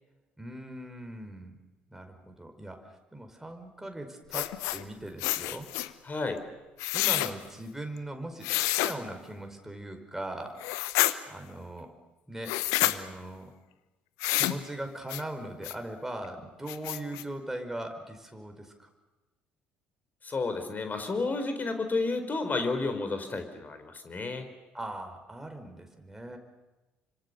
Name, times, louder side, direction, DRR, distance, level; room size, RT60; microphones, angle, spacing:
voice 1, 0.4-1.6 1.9-5.7 6.9-10.6 11.3-11.9 12.3-13.5 14.3-18.9 24.7-26.4, right 1 dB, 5° right, 5 dB, 5.1 m, -40 dB
sound 1, 4.3-4.8 5.2-5.9 6.8-7.3 8.4-8.9 10.6-11.1 12.4-13.0 14.2-14.6 15.1-15.2 15.6-15.7 16.2-16.3 16.7-17.2, left 18 dB, 65° left, 1.0 m, -28 dB
voice 2, 6.0-6.4 20.2-24.5, left 3 dB, 30° left, 8 dB, 4.4 m, -31 dB
30.0 x 25.5 x 6.9 m, 1.1 s
figure-of-eight pair, 55°, 6 cm